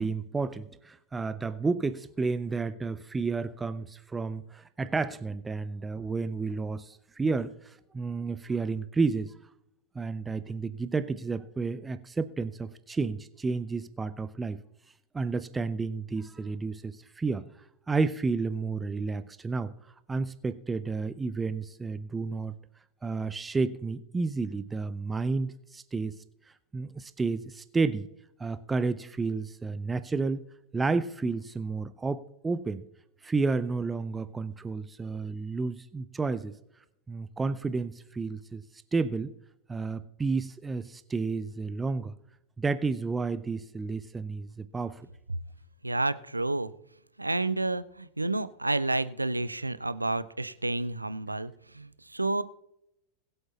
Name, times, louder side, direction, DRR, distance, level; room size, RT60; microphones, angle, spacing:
voice 1, 0.0-9.3 9.9-14.6 15.1-17.5 17.9-19.7 20.1-22.6 23.0-26.2 26.7-28.1 28.4-30.4 30.7-32.8 33.2-36.6 37.1-38.6 38.9-39.3 39.7-42.1 42.6-45.1, right 4 dB, 15° right, 14 dB, 0.5 m, -31 dB
voice 2, 45.8-46.7 47.2-52.4, right 2 dB, 85° right, 16 dB, 0.5 m, -30 dB
21.0 x 8.0 x 2.9 m, 0.81 s
figure-of-eight pair, 90°, 0 cm